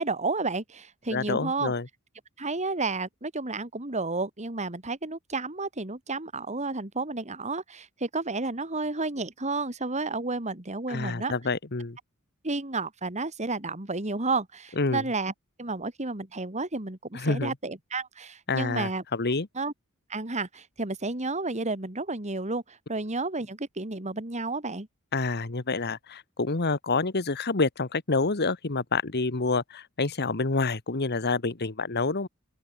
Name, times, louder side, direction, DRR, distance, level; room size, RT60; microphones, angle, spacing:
voice 1, 0.0-1.7 2.4-11.3 12.4-15.3 15.6-19.0 19.5-19.7 20.1-24.9, right 3 dB, 30° right, 2.5 m, -31 dB
voice 2, 1.1-1.9 10.9-12.0 14.8-15.0 17.1-17.5 18.5-19.5 25.1-32.3, left 3 dB, 50° left, 1.4 m, -28 dB
open air
head